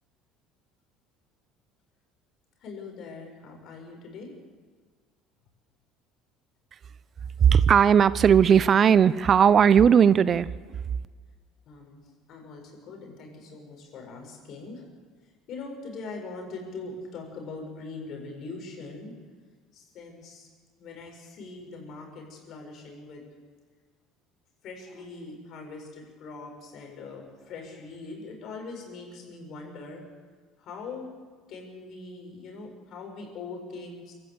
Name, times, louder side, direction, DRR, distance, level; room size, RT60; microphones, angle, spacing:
voice 1, 2.6-4.3 11.7-12.0 12.3-14.8 15.5-19.1 19.7-20.5 20.8-23.2 24.6-30.0 30.6-31.1 31.5-34.1, left 3 dB, 55° left, 2 dB, 7.3 m, -41 dB
voice 2, 7.4-10.5, right 8 dB, 45° right, 17 dB, 0.7 m, -17 dB
25.5 x 13.5 x 8.5 m, 1.5 s
hypercardioid pair, 75°, 0 cm